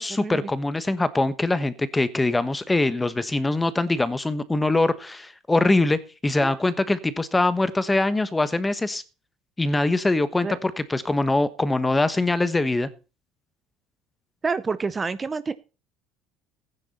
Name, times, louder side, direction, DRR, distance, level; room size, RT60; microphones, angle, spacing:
voice 1, 0.0-9.0 9.6-12.9, left 2 dB, 10° left, 14 dB, 1.2 m, -23 dB
voice 2, 14.4-15.5, right 4 dB, 20° right, 14 dB, 0.8 m, -28 dB
15.0 x 9.9 x 4.3 m, 0.33 s
cardioid pair, 125°, 0 cm